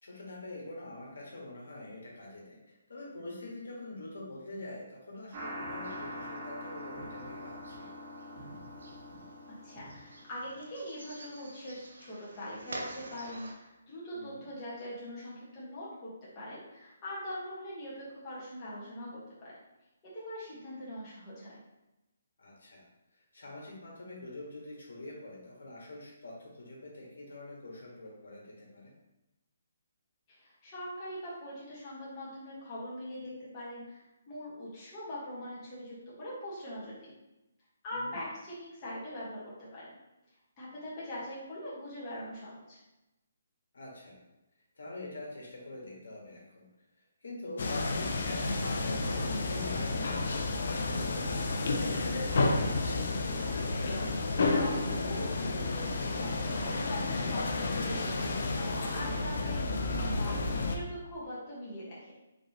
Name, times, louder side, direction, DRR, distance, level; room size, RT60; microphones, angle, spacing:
voice 1, 0.0-7.9 14.1-14.4 22.4-22.9 23.1-28.9 37.9-38.2 43.7-44.2 44.8-46.7 47.2-51.9, left 2 dB, 80° left, -3 dB, 1.5 m, -45 dB
sound 1, 5.3-10.6, equal, 35° right, 1.2 m, -43 dB
sound 2, 5.3-13.5, right 2 dB, 85° right, 0.8 m, -50 dB
voice 2, 9.6-19.5 20.1-21.6 30.3-37.1 37.8-39.9 40.6-42.8 53.4-62.1, equal, 20° left, -9 dB, 1.5 m, -42 dB
sound 3, 47.6-60.8, left 3 dB, 55° left, 0.6 m, -31 dB
5.2 x 3.1 x 2.9 m, 0.96 s
hypercardioid pair, 165°, 0 cm